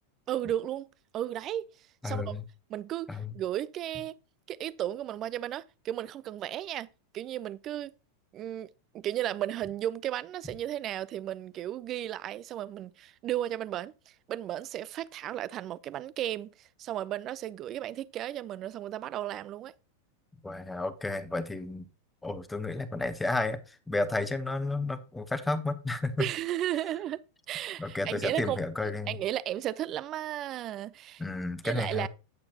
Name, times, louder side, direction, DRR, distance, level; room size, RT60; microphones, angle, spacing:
voice 1, 0.3-1.7 2.0-2.3 2.7-4.1 4.5-6.9 7.1-7.9 8.3-8.7 8.9-19.7 26.2-27.2 27.5-28.6 29.1-31.2 31.6-32.1, right 12 dB, 35° right, 0.5 m, -34 dB
voice 2, 2.0-2.4 3.1-3.3 20.4-21.8 22.2-26.3 27.8-29.2 31.2-32.1, left 2 dB, 5° left, 1.0 m, -32 dB
9.6 x 8.6 x 2.9 m
figure-of-eight pair, 90°, 0 cm